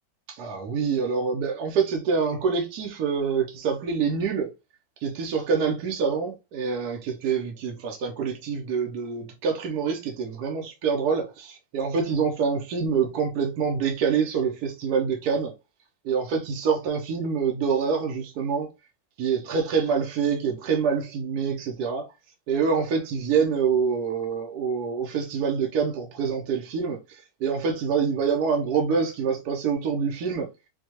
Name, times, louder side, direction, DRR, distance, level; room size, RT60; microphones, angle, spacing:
voice 1, 0.3-4.5 5.0-15.5 16.0-18.7 19.2-22.1 22.5-30.5, right 6 dB, 65° right, 1.1 m, -26 dB
4.4 x 2.2 x 2.8 m
omnidirectional pair, 1.9 m